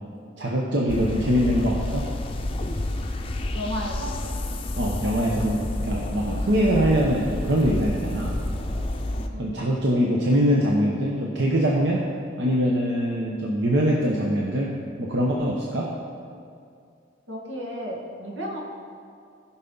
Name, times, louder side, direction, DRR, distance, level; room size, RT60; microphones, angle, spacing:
voice 1, 0.4-2.1 4.8-8.4 9.4-12.0 12.4-14.7 15.0-15.9, equal, 70° right, -3 dB, 0.9 m, -23 dB
sound 1, 0.9-9.3, left 1 dB, 30° left, 0.5 m, -29 dB
voice 2, 3.5-4.2 5.1-5.7 9.3-9.5 17.3-18.6, equal, 90° right, -2 dB, 2.0 m, -33 dB
16.0 x 5.7 x 4.0 m, 2.3 s
head